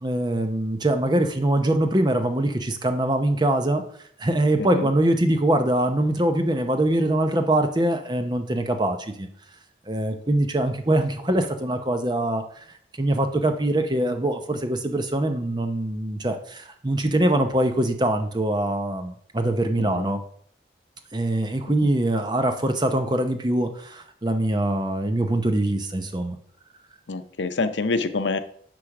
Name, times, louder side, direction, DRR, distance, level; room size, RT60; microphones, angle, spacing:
voice 1, 0.0-3.8 4.2-9.3 9.9-12.4 13.0-20.2 21.1-26.4, right 1 dB, 25° right, 7 dB, 0.8 m, -23 dB
voice 2, 27.1-28.4, left 3 dB, 85° left, 10 dB, 0.7 m, -26 dB
9.9 x 3.4 x 5.9 m, 0.62 s
head